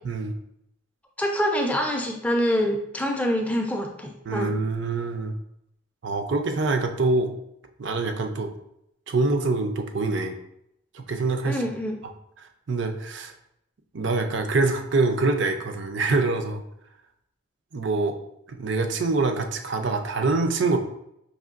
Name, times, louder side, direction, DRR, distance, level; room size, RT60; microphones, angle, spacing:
voice 1, 1.2-4.6 11.5-12.0, equal, 5° left, 2 dB, 0.4 m, -25 dB
voice 2, 4.3-5.4 6.0-7.3 7.8-8.5 9.1-10.3 10.9-11.6 12.7-13.3 13.9-16.6 17.7-18.1 18.5-20.8, right 3 dB, 55° right, 6 dB, 0.5 m, -25 dB
5.4 x 3.1 x 2.5 m, 0.78 s
head